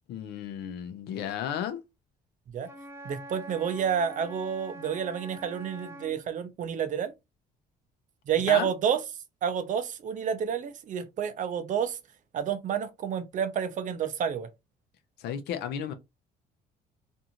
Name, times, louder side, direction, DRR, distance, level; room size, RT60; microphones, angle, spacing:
voice 1, 0.1-1.8 8.5-8.7 15.2-15.9, left 9 dB, 75° left, 0.6 m, -33 dB
Wind instrument woodwind instrument, 2.6-6.2, right 1 dB, 15° right, 0.8 m, -45 dB
voice 2, 3.0-7.1 8.3-9.0 9.4-12.0 12.3-14.5, right 8 dB, 50° right, 0.6 m, -29 dB
2.6 x 2.4 x 2.9 m
cardioid pair, 110°, 17 cm